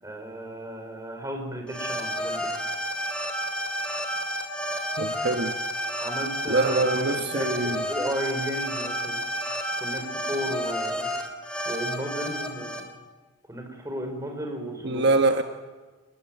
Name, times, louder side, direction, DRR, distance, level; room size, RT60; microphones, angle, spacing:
voice 1, 0.0-2.5 6.0-9.2 9.8-11.1 11.7-12.8 13.5-15.0, equal, 15° right, 3 dB, 5.8 m, -34 dB
sound 1, 1.7-12.8, equal, 5° left, 3.5 m, -31 dB
voice 2, 5.0-5.5 6.5-7.8 14.8-15.4, right 3 dB, 60° right, 5 dB, 1.5 m, -24 dB
28.0 x 20.0 x 9.4 m, 1.3 s
head